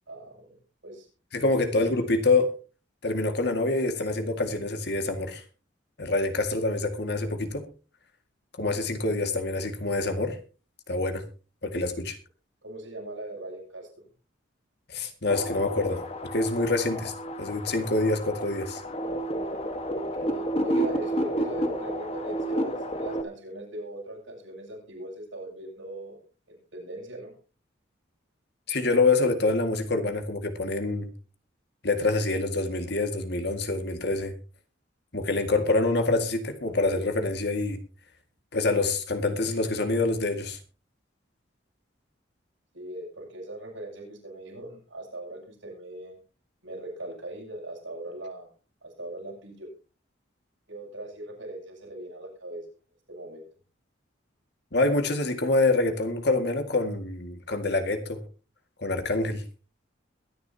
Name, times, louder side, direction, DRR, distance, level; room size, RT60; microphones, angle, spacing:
voice 1, 0.1-0.6 0.8-1.1 1.4-1.7 12.6-14.1 20.2-26.2 26.5-27.3 42.7-46.2 46.6-48.5 48.8-49.7 50.7-52.7 53.1-53.4, right 1 dB, 80° right, -2 dB, 8.0 m, -40 dB
voice 2, 1.3-2.5 3.0-5.4 6.0-7.6 8.6-10.4 10.9-11.2 11.6-12.2 14.9-16.0 16.3-17.1 17.4-18.8 28.7-31.1 31.8-34.3 35.1-37.8 38.5-40.6 54.7-58.2 58.8-59.4, left 2 dB, 55° left, 7 dB, 2.0 m, -26 dB
sound 1, 15.3-23.2, equal, 30° left, 1.4 m, -31 dB
22.5 x 10.5 x 2.8 m, 0.34 s
head